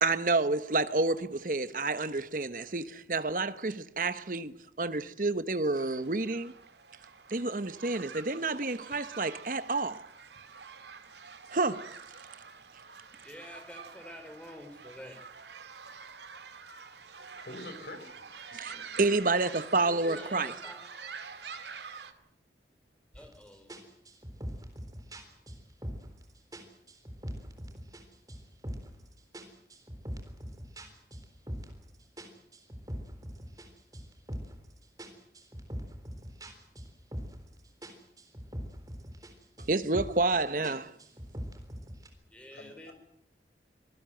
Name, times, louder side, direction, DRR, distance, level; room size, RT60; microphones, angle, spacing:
voice 1, 0.0-6.5 7.3-10.1 11.5-12.0 18.5-20.5 39.7-40.9, right 3 dB, 50° right, 1.1 m, -29 dB
sound 1, 5.7-22.1, right 5 dB, 80° right, 2.1 m, -47 dB
voice 2, 13.0-15.2 19.4-20.8 23.1-23.7 42.3-42.9, left 1 dB, 5° left, 4.7 m, -48 dB
voice 3, 17.0-18.3 42.5-42.9, left 2 dB, 70° left, 5.0 m, -46 dB
sound 2, 23.1-23.4 23.7-26.2 26.5-28.0 28.3-29.0 29.3-31.8 32.2-34.7 35.0-37.5 37.8-39.3 39.6-40.3 40.6-42.1, equal, 20° right, 3.8 m, -42 dB
25.5 x 19.0 x 7.9 m
head